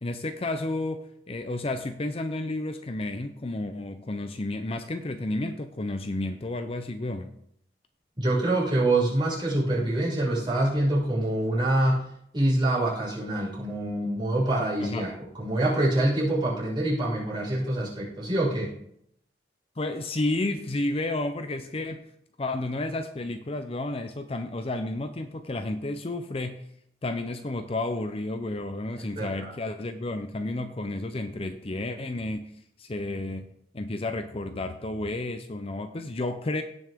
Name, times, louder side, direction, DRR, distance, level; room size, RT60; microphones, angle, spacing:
voice 1, 0.0-7.3 14.8-15.1 19.8-22.0 22.4-26.6 27.0-32.5 32.8-33.5 33.7-36.6, left 2 dB, 35° left, 8 dB, 0.6 m, -31 dB
voice 2, 8.2-12.0 12.3-18.7 29.2-29.5, right 1 dB, 25° right, -6 dB, 5.3 m, -25 dB
17.0 x 6.3 x 3.6 m, 0.70 s
head